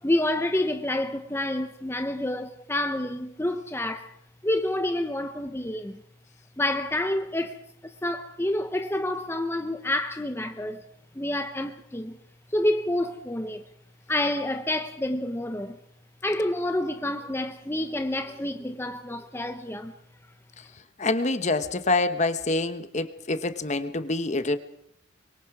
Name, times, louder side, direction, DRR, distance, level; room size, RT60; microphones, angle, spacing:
voice 1, 0.0-4.1 4.4-6.0 6.6-10.8 11.1-12.2 12.5-13.7 14.1-15.8 16.2-19.9, left 1 dB, 10° left, 0.8 m, -28 dB
voice 2, 21.0-24.6, left 2 dB, 35° left, 1.0 m, -26 dB
24.5 x 23.0 x 4.8 m
head